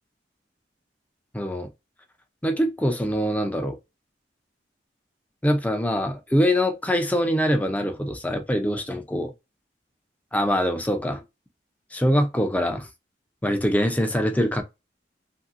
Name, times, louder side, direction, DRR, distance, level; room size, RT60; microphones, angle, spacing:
voice 1, 1.3-1.7 2.4-3.8 5.4-9.3 10.3-11.2 11.9-12.9 13.4-14.6, equal, 10° left, 0.5 m, -23 dB
2.8 x 2.7 x 2.5 m
head